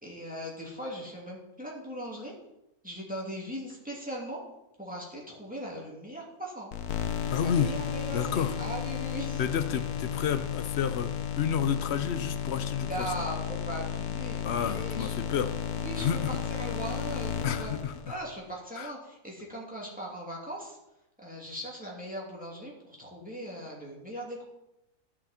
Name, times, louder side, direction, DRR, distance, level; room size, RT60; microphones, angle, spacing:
voice 1, 0.0-2.3 2.8-4.4 4.8-6.7 7.4-9.4 12.9-15.2 15.7-17.8 18.0-20.8 21.2-24.4, right 1 dB, 5° right, -4 dB, 2.6 m, -39 dB
sound 1, 6.7-18.4, left 9 dB, 90° left, 1.3 m, -33 dB
voice 2, 7.3-7.7 8.1-8.6 9.4-11.1 11.4-13.1 14.4-15.5 16.0-16.4 17.4-18.1 18.8-18.9, left 8 dB, 60° left, 11 dB, 0.7 m, -30 dB
14.0 x 6.0 x 4.3 m, 0.89 s
omnidirectional pair, 1.6 m